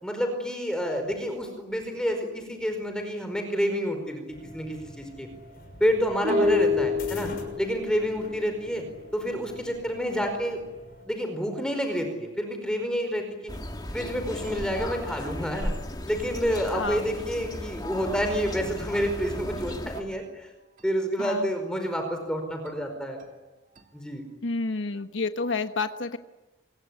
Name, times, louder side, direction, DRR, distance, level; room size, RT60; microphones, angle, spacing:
voice 1, 0.0-5.3 5.8-7.3 7.6-8.8 9.1-10.6 11.1-13.5 13.9-15.7 16.1-20.5 20.8-23.2 23.9-24.2, equal, 5° left, 5 dB, 4.8 m, -29 dB
sound 1, 4.3-11.1, left 1 dB, 50° left, 6.2 m, -45 dB
sound 2, 6.2-9.8 14.4-15.9 16.7-16.8 17.1-17.2 17.5-17.6 17.9-18.0 18.4-18.8 19.2-19.8 20.1-20.2 20.8-20.9 22.6-22.7 23.2-23.3 23.8-23.9, left 3 dB, 40° right, 2.9 m, -31 dB
voice 2, 6.3-6.6 16.7-17.1 21.2-21.5 24.4-26.2, left 3 dB, 90° left, 8 dB, 1.3 m, -30 dB
sound 3, 13.5-20.0, left 1 dB, 20° left, 2.6 m, -35 dB
26.0 x 22.5 x 9.6 m, 1.1 s
head